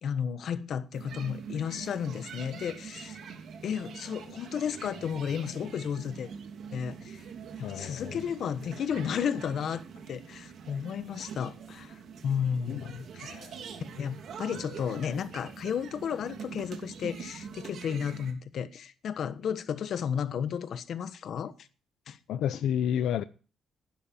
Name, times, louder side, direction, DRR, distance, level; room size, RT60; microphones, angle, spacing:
voice 1, 0.0-3.2 3.6-6.3 6.7-7.2 7.6-9.8 10.1-12.0 12.2-13.4 13.9-21.5 22.1-22.2, left 7 dB, 55° left, 1.2 m, -33 dB
sound 1, 0.9-18.3, right 6 dB, 60° right, 3.1 m, -44 dB
voice 2, 7.6-8.2 12.7-12.9 13.2-13.6 22.3-23.2, left 9 dB, 80° left, 0.7 m, -31 dB
15.5 x 12.0 x 4.4 m
cardioid pair, 160°, 0 cm